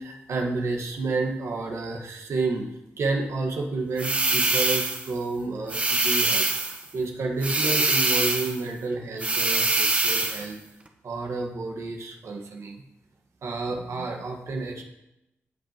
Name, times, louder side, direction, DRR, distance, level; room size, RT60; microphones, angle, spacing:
voice 1, 0.0-2.7 3.0-6.5 6.9-10.6 11.0-12.8 13.4-14.8, right 3 dB, 70° right, 2 dB, 1.5 m, -30 dB
sound 1, 4.0-5.1 5.7-6.8 7.4-8.6 9.2-10.5, right 2 dB, 25° right, 0.8 m, -24 dB
15.0 x 5.6 x 3.0 m, 0.88 s
wide cardioid pair, 115°, 5 cm